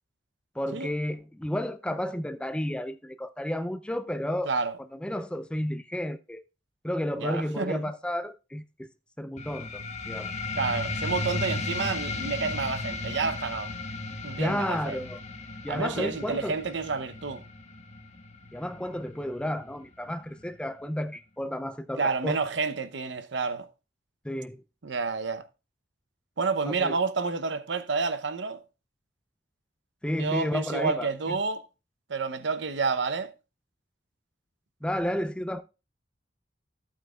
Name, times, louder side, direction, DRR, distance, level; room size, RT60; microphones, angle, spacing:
voice 1, 0.6-6.4 6.8-8.9 9.2-10.3 14.4-15.2 15.6-16.6 18.5-22.4 24.2-24.6 26.7-27.0 30.0-31.4 34.8-35.6, left 1 dB, 5° left, 0.4 m, -32 dB
voice 2, 4.5-4.8 7.2-7.8 10.5-13.7 14.2-15.0 15.7-17.4 22.0-23.7 24.8-25.5 26.4-28.6 30.2-31.7 32.1-33.3, right 4 dB, 80° right, 0.8 m, -29 dB
sound 1, 9.4-20.4, left 3 dB, 40° left, 1.4 m, -35 dB
14.0 x 8.7 x 2.4 m
head